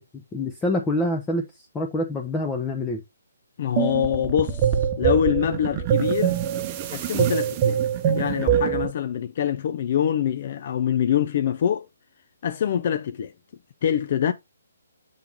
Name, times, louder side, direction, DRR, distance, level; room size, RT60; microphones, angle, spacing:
voice 1, 0.1-3.0, left 1 dB, 10° left, 0.9 m, -26 dB
voice 2, 3.6-6.4 6.9-7.8 8.1-11.9 12.4-13.3 13.8-14.3, left 9 dB, 45° left, 0.6 m, -24 dB
sound 1, 3.8-8.9, right 9 dB, 25° right, 0.9 m, -24 dB
7.3 x 3.7 x 4.6 m
hypercardioid pair, 150°, 0 cm